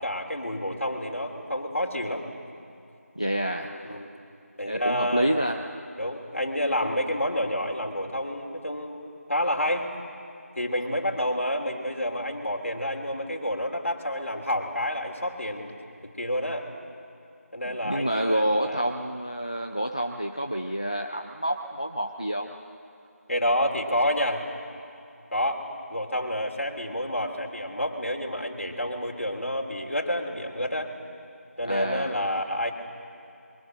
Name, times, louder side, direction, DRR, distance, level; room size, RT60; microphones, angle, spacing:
voice 1, 0.0-2.2 3.6-4.1 4.6-5.3 6.0-9.9 10.5-15.8 16.2-16.6 17.5-18.8 23.3-24.4 25.3-25.6 25.9-30.9 31.6-32.7, equal, 55° left, 1 dB, 3.4 m, -29 dB
voice 2, 3.2-4.0 4.7-5.6 17.8-22.5 31.7-32.1, right 1 dB, 20° left, 3 dB, 0.5 m, -28 dB
28.0 x 23.5 x 6.6 m, 2.7 s
figure-of-eight pair, 175°, 8 cm